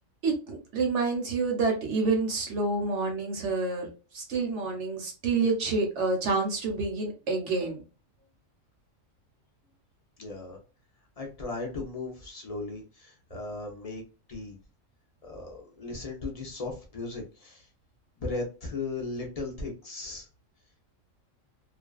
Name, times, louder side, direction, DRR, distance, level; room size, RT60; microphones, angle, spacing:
voice 1, 0.2-3.9 4.1-7.8, right 3 dB, 65° right, 2 dB, 1.0 m, -28 dB
voice 2, 10.2-10.6 11.2-14.0 14.3-14.6 15.2-17.7 18.2-20.3, left 3 dB, 50° left, 1 dB, 0.4 m, -37 dB
2.5 x 2.2 x 2.2 m, 0.34 s
omnidirectional pair, 1.4 m